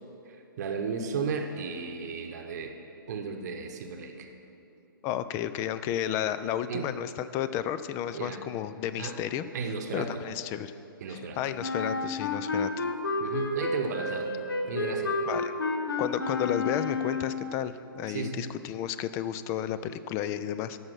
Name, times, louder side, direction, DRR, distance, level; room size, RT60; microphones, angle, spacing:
voice 1, 0.3-2.8 3.1-4.3 6.7-6.9 8.1-8.4 9.0-9.2 9.5-10.2 11.0-11.4 13.2-14.3 14.7-15.1 18.1-18.5, right 5 dB, 50° right, 5 dB, 0.9 m, -34 dB
voice 2, 5.0-9.5 9.9-10.7 11.1-12.8 15.3-15.5 16.0-20.8, left 10 dB, 25° left, 13 dB, 0.3 m, -32 dB
Wind instrument woodwind instrument, 11.6-17.5, left 3 dB, 75° left, 1.0 m, -30 dB
13.5 x 5.7 x 6.0 m, 2.9 s
figure-of-eight pair, 125°, 12 cm